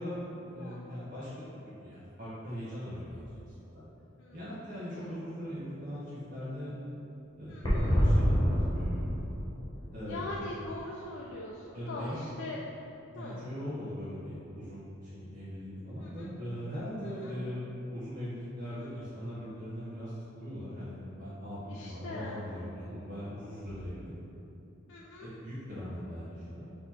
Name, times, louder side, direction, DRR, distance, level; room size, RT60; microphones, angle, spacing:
voice 1, 0.0-3.8 4.3-6.0 6.3-6.7 7.4-9.1 9.9-10.4 11.7-12.2 13.1-17.6 17.9-24.1 25.2-26.7, equal, 40° right, -11 dB, 0.9 m, -40 dB
voice 2, 0.6-1.0 4.2-4.4 7.5-7.9 10.1-12.6 13.1-13.4 16.0-16.3 17.2-17.3 18.7-18.9 21.7-22.4 24.9-25.3, left 2 dB, 60° left, -4 dB, 0.4 m, -42 dB
sound 1, 7.6-11.4 11.7-11.8 12.0-12.1, equal, 20° left, 0.9 m, -28 dB
4.1 x 2.8 x 4.1 m, 2.8 s
head